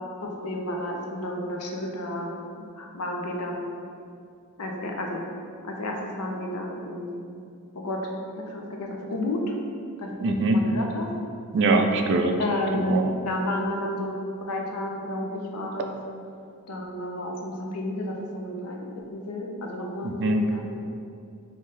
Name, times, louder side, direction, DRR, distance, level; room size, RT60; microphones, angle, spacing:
voice 1, 0.2-3.7 4.6-5.2 5.6-7.2 7.7-8.0 8.5-9.5 10.0-11.1 12.4-14.1 14.5-15.9 16.7-20.8, left 1 dB, 80° left, 0 dB, 0.6 m, -31 dB
voice 2, 10.2-10.6 11.5-12.3 12.7-13.1 20.0-20.4, right 2 dB, 55° right, 4 dB, 0.3 m, -22 dB
5.4 x 2.6 x 3.2 m, 2.4 s
head